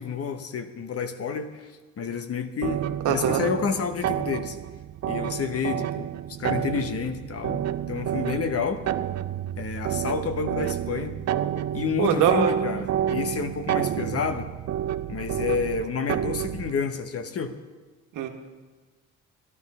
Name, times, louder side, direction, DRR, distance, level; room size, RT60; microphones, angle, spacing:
voice 1, 0.0-4.6 5.1-6.1 6.4-8.8 9.6-11.2 11.7-14.5 15.1-17.6, left 6 dB, 50° left, 8 dB, 1.1 m, -29 dB
sound 1, 2.6-16.8, right 10 dB, 60° right, 0.6 m, -29 dB
voice 2, 3.0-3.4 12.0-12.5 18.1-18.3, right 8 dB, 90° right, 5 dB, 1.3 m, -22 dB
12.5 x 12.0 x 5.5 m, 1.3 s
cardioid pair, 90°, 30 cm